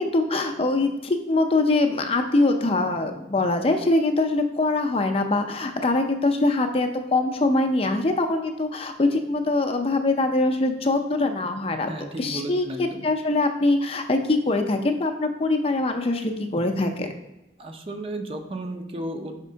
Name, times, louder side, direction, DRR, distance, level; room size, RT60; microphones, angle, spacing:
voice 1, 0.0-11.9 12.2-17.1, left 2 dB, 35° left, 6 dB, 0.5 m, -23 dB
voice 2, 11.9-13.1 17.6-19.4, right 1 dB, 30° right, 5 dB, 0.6 m, -34 dB
5.0 x 3.6 x 5.5 m, 0.94 s
head